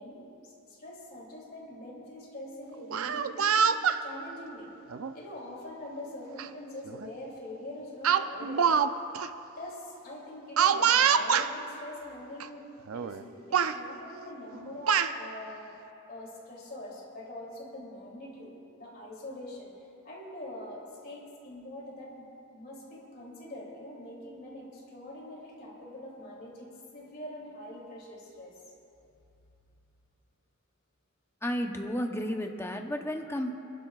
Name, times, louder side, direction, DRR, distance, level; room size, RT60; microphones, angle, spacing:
voice 1, 0.0-3.7 4.0-4.7 5.1-8.8 9.6-12.6 12.9-15.7 16.1-19.7 20.0-22.2 22.5-28.5, left 1 dB, 50° left, -3 dB, 2.9 m, -44 dB
Speech, 2.8-4.0 4.9-5.1 6.4-6.5 6.9-7.1 8.0-8.9 9.1-9.3 10.6-11.5 12.4-12.5 12.9-13.2 13.5-13.8 14.5-15.1, right 7 dB, 90° right, 0.5 m, -25 dB
voice 2, 31.4-33.6, equal, 10° left, 4 dB, 0.8 m, -32 dB
28.5 x 12.0 x 2.4 m, 2.7 s
head